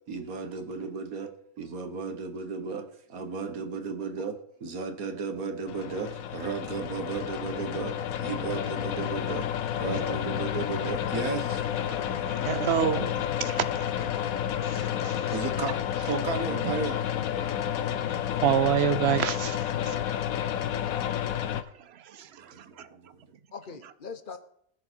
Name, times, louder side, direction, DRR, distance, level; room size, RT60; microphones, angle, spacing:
voice 1, 0.1-4.3 4.6-11.6 15.3-15.8 16.1-17.0 18.0-18.1 22.4-23.2, right 4 dB, 85° right, 1.8 m, -34 dB
sound 1, 5.7-21.6, left 10 dB, 85° left, 1.2 m, -30 dB
voice 2, 9.8-10.2 13.0-13.5 23.5-24.4, left 5 dB, 45° left, 0.9 m, -41 dB
voice 3, 11.9-13.1 14.0-14.1 14.7-15.2 16.5-16.6 17.4-20.0 22.1-22.9, right 9 dB, 55° right, 0.8 m, -29 dB
20.0 x 6.6 x 4.5 m
omnidirectional pair, 1.5 m